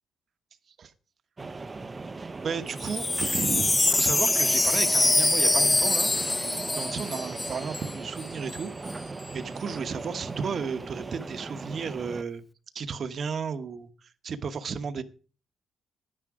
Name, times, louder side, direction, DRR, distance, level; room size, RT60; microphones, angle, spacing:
sound 1, 1.4-12.2, right 3 dB, 25° right, 0.7 m, -38 dB
voice 1, 2.4-6.1 6.7-12.4 12.7-13.9 14.2-15.0, right 6 dB, 50° right, 11 dB, 1.0 m, -34 dB
Wind chime, 2.7-8.2 8.5-8.9, left 2 dB, 15° left, 0.5 m, -24 dB
10.0 x 10.0 x 4.8 m, 0.37 s
cardioid pair, 125°, 0 cm